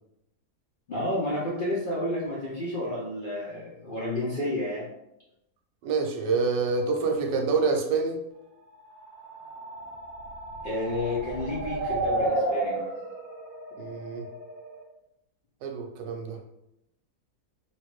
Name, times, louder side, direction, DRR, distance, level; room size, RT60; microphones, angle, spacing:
voice 1, 0.9-4.9 10.6-12.9, left 1 dB, 55° left, -7 dB, 0.6 m, -31 dB
voice 2, 5.8-8.2 13.8-14.3 15.6-16.4, right 4 dB, 85° right, 2 dB, 1.2 m, -27 dB
sound 1, 9.0-14.8, right 2 dB, 70° right, 1.1 m, -32 dB
3.0 x 2.5 x 3.0 m, 0.85 s
omnidirectional pair, 1.8 m